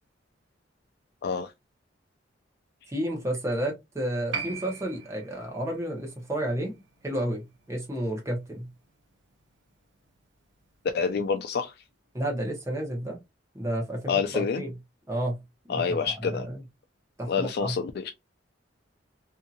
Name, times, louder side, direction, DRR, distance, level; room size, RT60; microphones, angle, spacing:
voice 1, 2.9-8.7 12.1-13.2 13.5-14.7 15.1-16.6 17.2-17.8, right 1 dB, 15° right, 0.9 m, -31 dB
Piano, 4.3-11.3 11.5-11.6, right 6 dB, 70° right, 0.8 m, -43 dB
voice 2, 10.9-11.7 14.1-14.6 15.7-16.5 17.3-18.1, left 5 dB, 60° left, 0.3 m, -27 dB
2.7 x 2.7 x 2.4 m
head